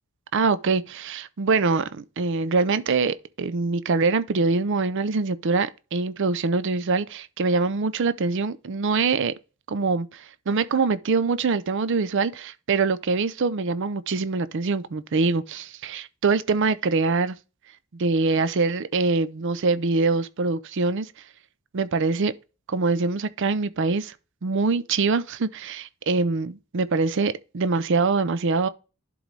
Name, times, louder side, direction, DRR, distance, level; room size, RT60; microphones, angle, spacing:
voice 1, 0.3-9.3 9.7-17.4 17.9-21.1 21.7-22.3 22.7-24.1 24.4-28.7, right 4 dB, 55° right, 0.5 m, -24 dB
11.0 x 3.9 x 3.2 m
head